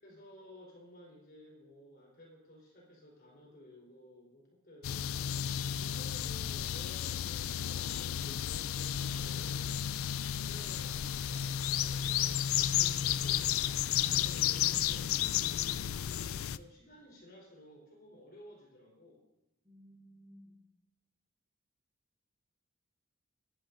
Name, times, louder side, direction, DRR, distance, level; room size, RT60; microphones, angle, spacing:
voice 1, 0.0-10.0 10.4-13.6 14.0-15.1 15.4-19.2, left 1 dB, 50° left, -3 dB, 4.1 m, -55 dB
sound 1, 4.8-16.6, left 10 dB, 85° left, 0.4 m, -32 dB
voice 2, 19.6-20.6, equal, 15° right, -4 dB, 5.3 m, -57 dB
26.0 x 11.0 x 2.6 m, 0.96 s
head